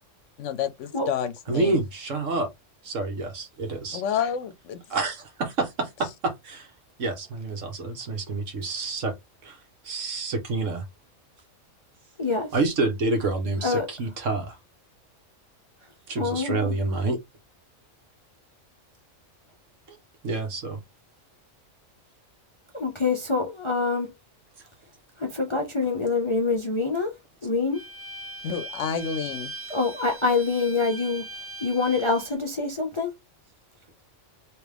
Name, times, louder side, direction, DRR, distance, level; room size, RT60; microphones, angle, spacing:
voice 1, 0.4-1.8 3.9-4.8 28.4-29.5, left 7 dB, 70° left, 0.9 m, -29 dB
voice 2, 1.5-2.5 2.8-4.0 4.9-6.7 7.0-9.1 9.4-9.6 9.8-10.8 12.5-14.6 16.1-17.2 20.2-20.8, right 3 dB, 70° right, 1.5 m, -28 dB
voice 3, 12.2-12.5 13.6-13.9 16.2-16.7 22.7-24.1 25.2-27.2 27.4-27.8 29.7-31.2 31.6-33.1, left 4 dB, 35° left, 0.5 m, -25 dB
Bowed string instrument, 27.7-32.4, right 2 dB, 25° right, 0.3 m, -40 dB
3.4 x 3.0 x 3.4 m
omnidirectional pair, 1.4 m